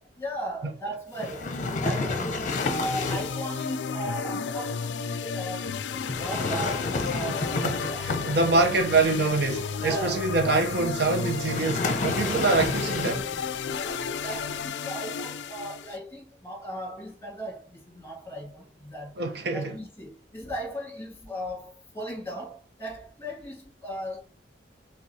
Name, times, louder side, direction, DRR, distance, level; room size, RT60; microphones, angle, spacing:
voice 1, 0.2-8.3 9.8-10.3 11.8-12.2 13.7-19.2 19.5-24.2, right 1 dB, 15° left, 2.0 m, -37 dB
sound 1, 1.2-3.4 6.0-8.7 11.4-13.4, left 3 dB, 45° left, 0.7 m, -30 dB
sound 2, 2.5-16.0, left 6 dB, 70° left, 0.4 m, -33 dB
voice 2, 8.0-13.2 19.2-19.7, right 3 dB, 60° right, 0.7 m, -25 dB
sound 3, 8.3-14.7, right 1 dB, 20° right, 1.3 m, -43 dB
4.5 x 3.6 x 2.7 m
head